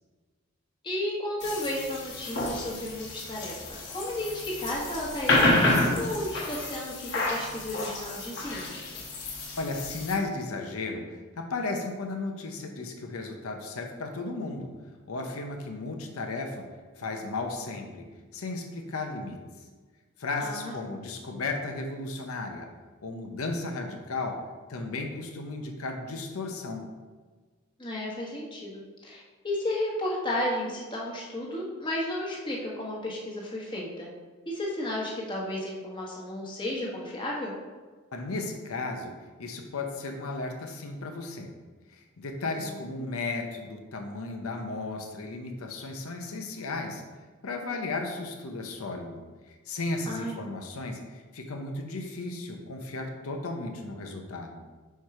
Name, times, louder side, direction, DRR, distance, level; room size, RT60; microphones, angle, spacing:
voice 1, 0.8-8.7 20.4-20.7 27.8-34.1 34.5-37.5 42.4-42.8 50.1-50.3, left 1 dB, 20° left, -4 dB, 1.2 m, -33 dB
sound 1, 1.4-10.1, left 2 dB, 55° left, 1.1 m, -29 dB
voice 2, 9.6-14.7 15.1-16.7 17.0-18.0 18.3-19.4 20.2-22.7 23.0-26.9 38.1-39.1 39.4-41.5 41.9-47.0 47.4-54.7, left 3 dB, 85° left, 4 dB, 0.7 m, -35 dB
4.7 x 4.5 x 4.7 m, 1.4 s
head